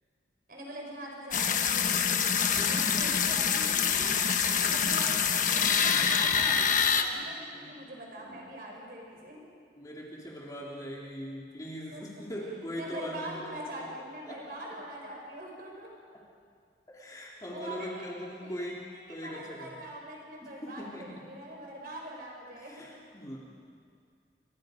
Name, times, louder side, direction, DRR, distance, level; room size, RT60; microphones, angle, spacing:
voice 1, 0.5-9.4 11.9-12.0 12.7-15.9 17.4-22.9, right 1 dB, 55° right, -1 dB, 4.8 m, -43 dB
sound 1, 1.3-7.0, left 7 dB, 45° left, 1.4 m, -26 dB
voice 2, 2.5-3.2 4.5-5.0 7.1-7.8 8.1-8.4 9.8-13.8 14.3-14.4 14.7-14.8 16.9-19.7 20.4-21.2 22.6-23.4, equal, 20° left, -4 dB, 3.2 m, -41 dB
30.0 x 25.0 x 5.2 m, 2.3 s
head